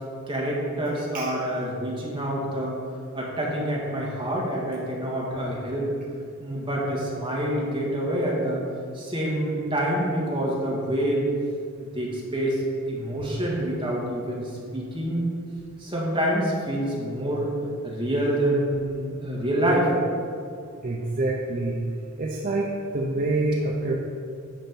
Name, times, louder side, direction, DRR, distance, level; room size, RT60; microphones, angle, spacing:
voice 1, 0.3-2.8 3.1-5.9 6.4-8.6 8.9-11.2 11.8-12.6 12.9-15.2 15.8-17.5 17.8-19.9, right 1 dB, 25° right, -4 dB, 1.8 m, -27 dB
voice 2, 20.8-21.8 22.2-22.7 22.9-23.9, right 2 dB, 40° right, -3 dB, 0.7 m, -26 dB
10.0 x 4.4 x 6.0 m, 2.4 s
head